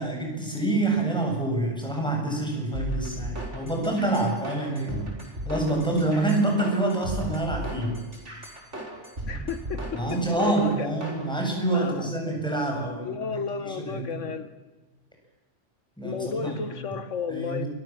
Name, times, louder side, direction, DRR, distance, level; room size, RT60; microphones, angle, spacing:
voice 1, 0.0-8.0 9.9-14.3 16.0-16.9 17.3-17.7, right 2 dB, 5° left, 1 dB, 7.9 m, -27 dB
sound 1, 2.7-11.2, right 1 dB, 75° right, 5.7 m, -35 dB
voice 2, 9.3-10.9 11.7-12.1 13.0-14.5 16.0-17.6, left 5 dB, 90° left, 11 dB, 1.7 m, -33 dB
28.5 x 23.5 x 7.6 m, 1.2 s
omnidirectional pair, 1.2 m